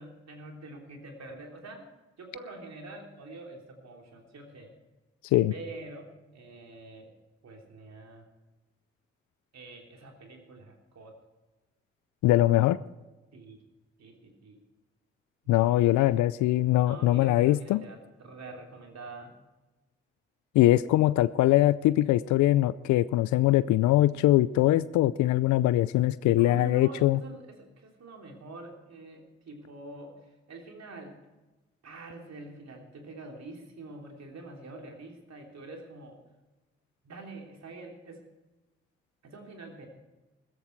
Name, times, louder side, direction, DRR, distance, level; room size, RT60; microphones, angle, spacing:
voice 1, 0.0-1.9 2.2-4.7 5.5-7.1 7.4-8.3 9.5-11.1 13.3-13.6 14.0-14.6 15.6-16.1 16.8-19.4 26.4-31.2 31.8-36.2 37.0-38.2 39.2-39.9, right 2 dB, 65° right, 2 dB, 3.3 m, -45 dB
voice 2, 12.2-12.8 15.5-17.8 20.5-27.2, left 15 dB, 85° left, 17 dB, 0.4 m, -22 dB
15.0 x 14.0 x 4.6 m, 1.1 s
supercardioid pair, 45°, 29 cm